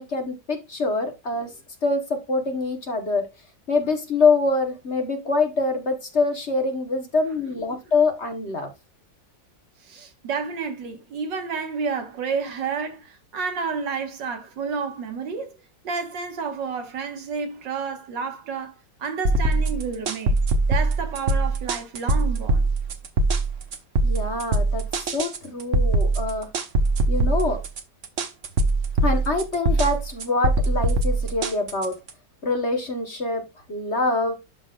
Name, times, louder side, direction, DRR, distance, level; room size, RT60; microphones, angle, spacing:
voice 1, 0.0-1.5 1.8-3.3 3.7-8.7 24.0-26.5 27.1-27.6 29.0-31.9 32.4-34.3, left 3 dB, 40° left, 1.3 m, -25 dB
voice 2, 9.8-15.6 15.8-18.7 19.0-20.4 20.7-22.6, right 5 dB, 75° right, 2.0 m, -30 dB
sound 1, 19.3-32.1, right 2 dB, 50° right, 1.2 m, -22 dB
12.0 x 4.0 x 2.3 m
omnidirectional pair, 2.0 m